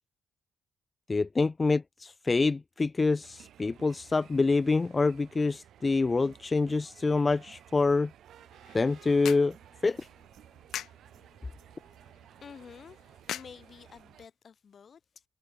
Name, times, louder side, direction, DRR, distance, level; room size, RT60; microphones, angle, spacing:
voice 1, 1.1-8.1 8.7-9.5 9.8-10.0, left 3 dB, 35° left, 0.4 m, -26 dB
sound 1, 3.2-14.3, right 11 dB, 75° right, 4.2 m, -55 dB
sound 2, 8.4-14.3, left 11 dB, 75° left, 3.7 m, -45 dB
voice 2, 12.4-13.0 13.3-15.2, left 6 dB, 55° left, 3.6 m, -50 dB
supercardioid pair, 50°, 0 cm